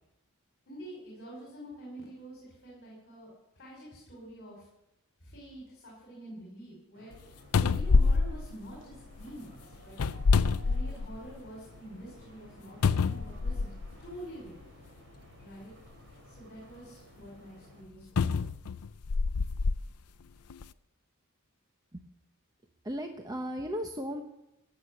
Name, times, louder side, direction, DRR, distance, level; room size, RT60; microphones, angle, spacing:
voice 1, 0.7-4.7 5.2-7.2 7.6-10.0 10.6-13.7 14.0-14.7 15.4-15.7 16.3-18.5, right 1 dB, 50° left, -4 dB, 5.4 m, -47 dB
sound 1, 6.9-17.8, right 1 dB, 60° right, 3.7 m, -56 dB
sound 2, 7.1-7.2 7.5-9.2 9.9-11.3 11.8-11.9 12.8-13.9 14.9-15.0 18.2-19.8 20.5-20.6, left 4 dB, 85° left, 0.5 m, -26 dB
voice 2, 22.8-24.2, equal, 15° right, 4 dB, 1.0 m, -35 dB
16.0 x 7.5 x 9.8 m, 0.89 s
head